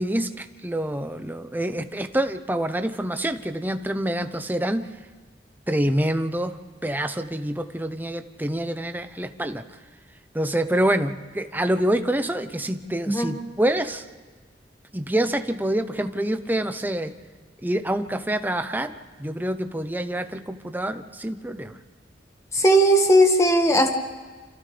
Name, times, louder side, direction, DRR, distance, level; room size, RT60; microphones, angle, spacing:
voice 1, 0.0-4.9 5.7-9.6 10.3-14.1 14.9-17.1 17.6-18.9 19.2-21.8, right 1 dB, 10° right, 8 dB, 0.8 m, -26 dB
voice 2, 22.5-23.9, equal, 15° left, 4 dB, 1.6 m, -17 dB
29.0 x 27.0 x 3.4 m, 1.5 s
head